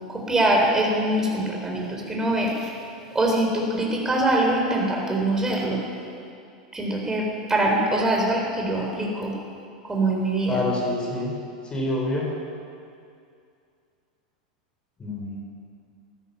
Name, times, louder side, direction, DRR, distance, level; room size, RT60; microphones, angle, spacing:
voice 1, 0.1-2.7 3.1-5.9 6.7-9.3 9.8-10.6, right 1 dB, 15° right, -1 dB, 4.0 m, -23 dB
voice 2, 10.5-11.3 11.7-12.4 15.0-15.4, left 1 dB, 20° left, -1 dB, 4.4 m, -27 dB
16.0 x 12.5 x 5.8 m, 2.4 s
hypercardioid pair, 100°, 4 cm